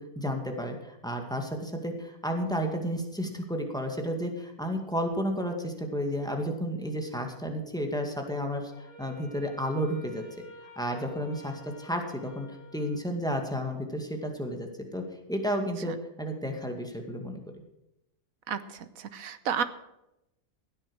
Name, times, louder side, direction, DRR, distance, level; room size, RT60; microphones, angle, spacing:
voice 1, 0.0-8.7 9.0-10.5 10.8-12.5 12.7-15.0 15.3-17.4, equal, 5° left, 3 dB, 2.0 m, -32 dB
Wind instrument woodwind instrument, 8.7-13.3, left 1 dB, 45° left, 4.8 m, -49 dB
voice 2, 18.5-19.6, right 7 dB, 80° right, 12 dB, 1.4 m, -32 dB
16.0 x 9.0 x 6.3 m, 0.88 s
omnidirectional pair, 1.4 m